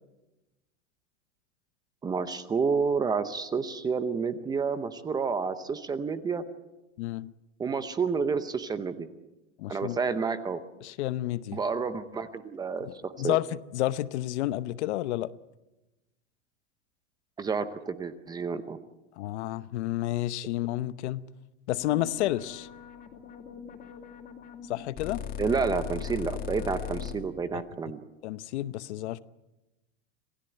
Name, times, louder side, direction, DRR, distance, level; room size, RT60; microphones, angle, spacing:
voice 1, 2.0-6.4 7.6-9.1 9.7-10.6 11.5-13.4 17.4-18.8 25.4-28.0, right 5 dB, 10° right, 0.7 m, -30 dB
voice 2, 7.0-7.3 9.6-10.0 10.8-11.6 12.8-15.3 19.2-21.2 21.7-22.7 24.7-25.2 27.5-27.6 28.2-29.2, left 15 dB, 60° left, 0.9 m, -30 dB
sound 1, 21.7-27.1, left 9 dB, 25° left, 2.5 m, -39 dB
27.0 x 16.5 x 8.0 m
supercardioid pair, 165°, 38 cm